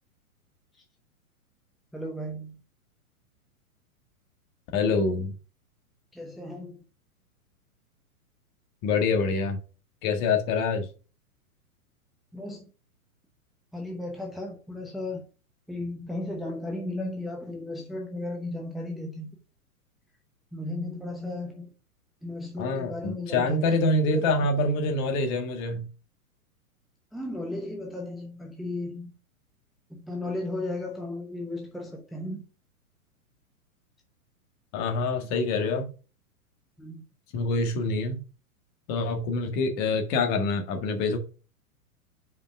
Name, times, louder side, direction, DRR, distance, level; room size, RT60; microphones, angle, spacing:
voice 1, 1.9-2.6 6.1-6.8 12.3-12.7 13.7-15.2 15.7-19.4 20.5-21.7 22.2-23.6 24.1-24.5 27.1-29.1 29.9-32.4 36.8-37.0, left 2 dB, ahead, 0.8 m, -35 dB
voice 2, 4.7-5.3 8.8-9.6 10.0-10.9 22.6-25.8 34.7-35.9 37.3-38.2 38.9-41.2, left 3 dB, 35° left, 1.8 m, -26 dB
5.3 x 5.1 x 5.4 m
hypercardioid pair, 115°, 44 cm